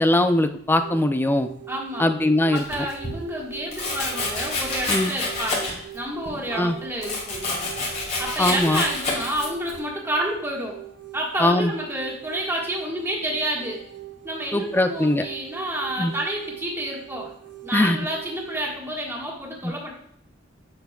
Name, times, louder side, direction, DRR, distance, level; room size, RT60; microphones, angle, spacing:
voice 1, 0.0-1.5 2.0-2.6 4.9-5.1 6.5-6.8 8.4-8.8 11.4-11.7 14.5-15.2 16.0-16.1 17.7-18.0 19.6-19.7, left 1 dB, 10° left, 8 dB, 0.4 m, -21 dB
sound 1, 0.7-18.8, right 14 dB, 70° right, 0.6 m, -41 dB
voice 2, 1.7-2.1 2.5-10.8 11.1-13.8 14.2-17.3 17.6-19.9, right 1 dB, 15° right, -3 dB, 1.6 m, -29 dB
Domestic sounds home sounds, 2.5-3.2 3.7-6.0 6.3-9.8, left 2 dB, 35° left, 2.4 m, -28 dB
8.2 x 8.1 x 2.4 m, 0.65 s
head